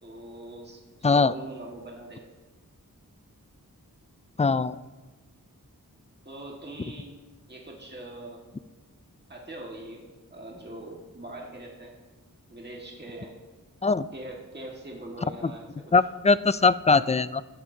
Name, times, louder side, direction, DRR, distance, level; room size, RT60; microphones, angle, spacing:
voice 1, 0.0-2.3 6.2-7.2 7.5-8.4 9.3-10.0 10.3-11.9 12.5-13.3 14.1-15.9, right 1 dB, 30° right, -2 dB, 1.7 m, -42 dB
voice 2, 1.0-1.3 4.4-4.8 13.8-14.1 15.9-17.4, left 4 dB, 20° left, 16 dB, 0.3 m, -21 dB
14.0 x 11.0 x 2.7 m, 1.2 s
wide cardioid pair, 45°, 36 cm